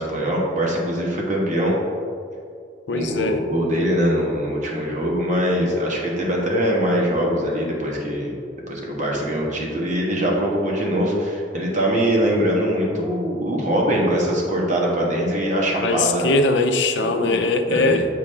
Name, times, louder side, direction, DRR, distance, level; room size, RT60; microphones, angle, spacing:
voice 1, 0.0-1.7 2.9-8.4 8.7-16.3 17.0-17.4 17.7-18.0, equal, 45° right, -2 dB, 1.3 m, -22 dB
voice 2, 2.9-3.4 15.8-18.1, left 3 dB, 85° left, 7 dB, 0.6 m, -21 dB
7.0 x 6.1 x 3.3 m, 2.3 s
head